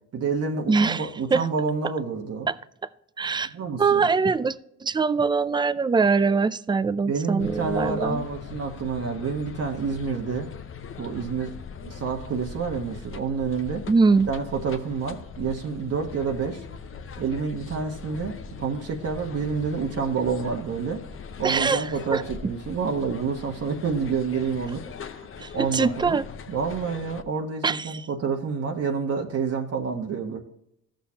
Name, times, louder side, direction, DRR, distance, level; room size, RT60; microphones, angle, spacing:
voice 1, 0.1-2.5 3.5-4.1 7.1-10.5 11.0-11.5 11.8-13.9 14.3-16.6 17.2-21.0 21.4-25.3 25.5-26.2 26.5-30.4, right 5 dB, 55° right, 1.2 m, -28 dB
voice 2, 0.7-1.5 2.5-2.6 3.2-3.5 3.8-4.5 4.8-8.2 13.9-14.3 21.4-22.2 25.4-26.2 27.6-28.0, right 4 dB, 15° right, 0.4 m, -23 dB
sound 1, 7.4-27.2, left 6 dB, 45° left, 0.8 m, -41 dB
14.0 x 6.4 x 2.8 m
cardioid pair, 90°, 30 cm